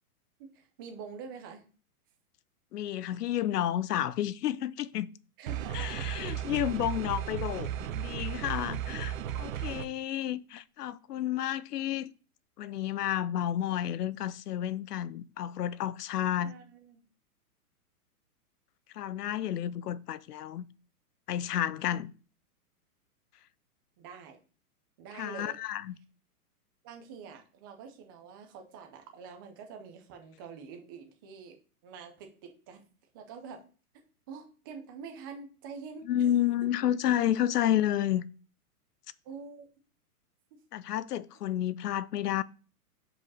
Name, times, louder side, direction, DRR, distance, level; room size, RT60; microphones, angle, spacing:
voice 1, 0.4-1.6 5.4-6.1 16.4-17.0 24.0-24.4 25.0-25.6 26.8-31.6 31.8-32.9 33.1-33.6 34.3-36.3 39.2-39.7, right 6 dB, 15° right, 0.5 m, -46 dB
voice 2, 2.7-5.1 5.7-12.1 12.6-16.6 18.9-20.7 21.3-22.1 25.1-25.9 36.0-38.2 40.7-42.4, left 11 dB, 85° left, 0.7 m, -31 dB
sound 1, 5.5-9.9, right 10 dB, 60° right, 0.8 m, -35 dB
5.0 x 4.9 x 5.4 m
hypercardioid pair, 160°, 46 cm